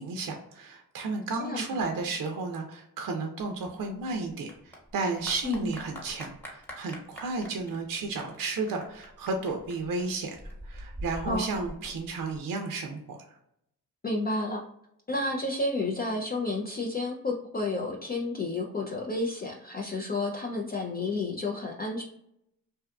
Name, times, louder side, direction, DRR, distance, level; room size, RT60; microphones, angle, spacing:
voice 1, 0.0-10.4 10.6-13.2, right 3 dB, 60° right, 3 dB, 0.5 m, -33 dB
voice 2, 1.4-1.8 5.4-5.7 11.3-11.5 14.0-14.6 15.1-22.0, left 2 dB, 25° left, -1 dB, 0.4 m, -31 dB
Clapping / Applause, 3.4-12.4, equal, 5° left, 1.1 m, -44 dB
2.6 x 2.4 x 2.2 m, 0.76 s
cardioid pair, 55°, 37 cm